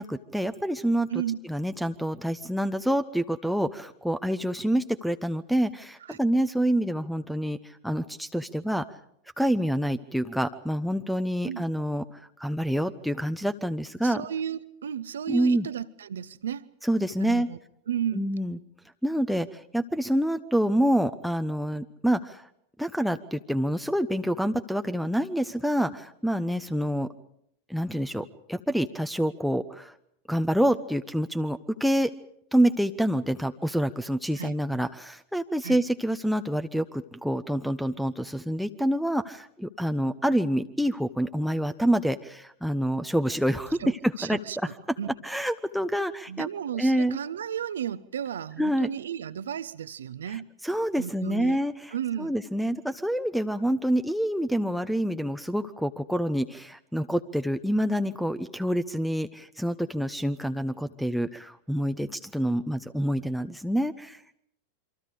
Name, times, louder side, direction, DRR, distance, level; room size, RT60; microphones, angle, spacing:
voice 1, 0.0-1.1 1.5-8.9 9.4-14.2 15.3-15.7 16.8-17.5 18.1-18.6 19.0-22.5 22.8-27.1 27.7-29.9 30.3-32.1 32.5-44.0 44.2-44.4 45.2-46.5 46.8-47.2 48.6-48.9 50.6-64.2, equal, ahead, 13 dB, 0.9 m, -27 dB
voice 2, 14.0-16.7 17.2-17.6 17.9-18.3 19.1-19.2 34.4-34.6 35.6-35.8 43.8-45.1 46.3-50.5 51.0-51.6 51.9-52.3, right 9 dB, 65° right, 15 dB, 0.9 m, -33 dB
28.0 x 25.0 x 5.1 m, 0.72 s
figure-of-eight pair, 90°, 0 cm